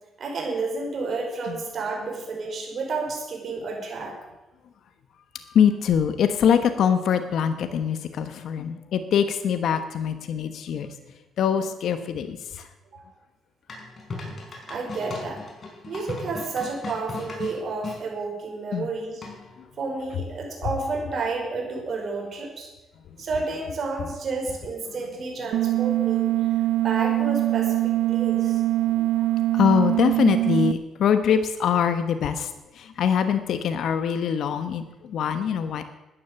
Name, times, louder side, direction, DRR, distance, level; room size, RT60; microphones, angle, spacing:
voice 1, 0.2-4.2 12.9-13.0 14.7-15.4 15.9-19.2 19.8-22.7 23.2-26.5 26.8-28.6, right 3 dB, 55° right, 1 dB, 5.2 m, -31 dB
voice 2, 5.3-11.0 11.4-12.7 18.7-18.9 28.8-29.3 29.5-35.8, left 8 dB, 70° left, 9 dB, 1.1 m, -23 dB
sound 1, 13.7-18.0 19.2-19.6, left 3 dB, 40° left, 4.9 m, -37 dB
sound 2, 25.5-30.7, right 16 dB, 80° right, 0.4 m, -23 dB
14.0 x 10.0 x 6.9 m, 1.0 s
cardioid pair, 90°, 0 cm